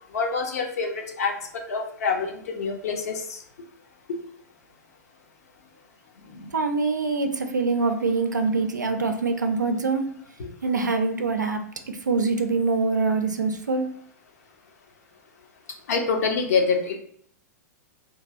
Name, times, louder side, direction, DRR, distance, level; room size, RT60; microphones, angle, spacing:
voice 1, 0.1-1.4 1.7-3.4 6.3-6.5 10.4-10.5 15.9-16.9, left 5 dB, 60° left, 3 dB, 0.6 m, -26 dB
voice 2, 6.5-10.1 10.6-11.6 12.1-13.9, right 4 dB, 80° right, 5 dB, 0.4 m, -24 dB
3.0 x 2.5 x 2.3 m, 0.62 s
figure-of-eight pair, 105°, 10 cm